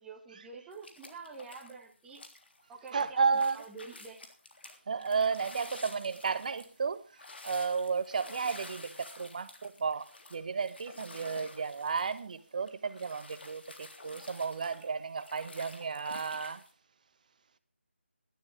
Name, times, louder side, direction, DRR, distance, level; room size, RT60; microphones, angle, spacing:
voice 1, 0.0-2.2 2.7-4.2, right 4 dB, 10° right, 1.7 m, -47 dB
sound 1, 0.7-1.8 2.1-16.7, left 2 dB, 60° left, 3.4 m, -50 dB
voice 2, 2.9-3.6 4.9-7.0 7.4-16.6, right 5 dB, 40° right, 1.2 m, -33 dB
18.5 x 12.5 x 3.5 m
figure-of-eight pair, 160°, 6 cm